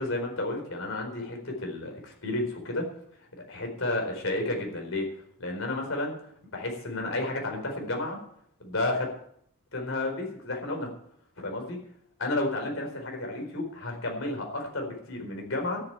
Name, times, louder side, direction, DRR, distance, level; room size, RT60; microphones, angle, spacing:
voice 1, 0.0-2.9 3.5-5.1 5.4-6.2 6.5-8.2 8.6-9.1 9.7-10.9 11.4-11.8 12.2-15.8, left 2 dB, 60° left, 2 dB, 4.5 m, -31 dB
13.0 x 8.0 x 9.0 m, 0.69 s
head